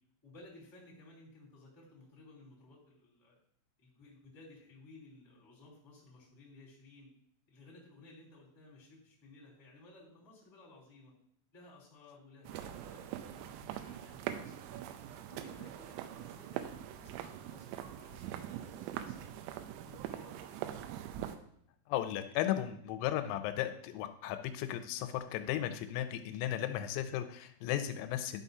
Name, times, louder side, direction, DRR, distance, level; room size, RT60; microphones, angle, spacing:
voice 1, 0.2-3.3 3.8-7.1 7.5-11.1 11.5-14.8 15.3-16.7 17.0-19.3 19.8-20.6, left 2 dB, 10° left, -7 dB, 1.4 m, -57 dB
sound 1, 12.4-21.4, right 11 dB, 90° right, 3.3 m, -43 dB
voice 2, 21.9-28.4, left 12 dB, 85° left, 9 dB, 3.2 m, -35 dB
11.0 x 5.8 x 2.7 m, 0.67 s
omnidirectional pair, 6.0 m